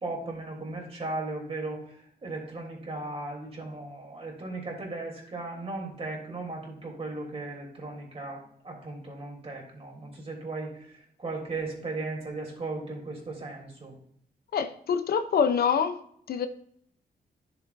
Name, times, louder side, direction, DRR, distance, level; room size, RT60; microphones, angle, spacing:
voice 1, 0.0-13.9, right 2 dB, 35° right, 3.2 m, -37 dB
voice 2, 14.5-16.0 16.3-16.5, left 7 dB, 70° left, 0.7 m, -25 dB
11.0 x 7.0 x 2.6 m
cardioid pair, 95°, 17 cm